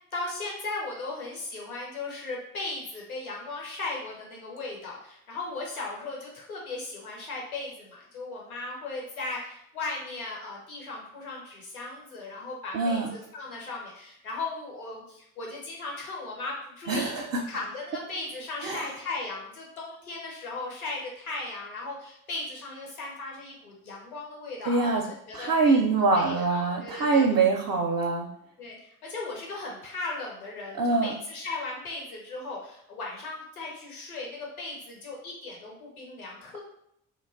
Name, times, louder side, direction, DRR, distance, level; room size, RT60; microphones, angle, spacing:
voice 1, 0.1-25.8 26.1-27.3 28.6-36.6, left 3 dB, 90° left, -2 dB, 0.6 m, -37 dB
voice 2, 12.7-13.1 16.9-17.4 18.6-18.8 24.7-25.0 25.3-28.3 30.8-31.2, right 3 dB, 35° right, 1 dB, 0.4 m, -24 dB
2.9 x 2.2 x 2.5 m, 0.73 s
figure-of-eight pair, 40°, 42 cm